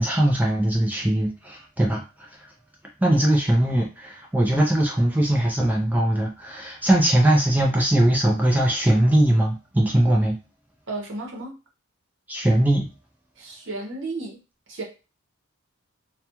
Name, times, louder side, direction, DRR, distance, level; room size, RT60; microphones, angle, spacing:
voice 1, 0.0-2.4 3.0-10.4 12.3-12.9, right 1 dB, 10° right, -1 dB, 0.4 m, -20 dB
voice 2, 10.9-11.5 13.4-14.4 14.7-14.8, right 2 dB, 55° right, 0 dB, 0.9 m, -33 dB
2.3 x 2.2 x 2.9 m, 0.31 s
head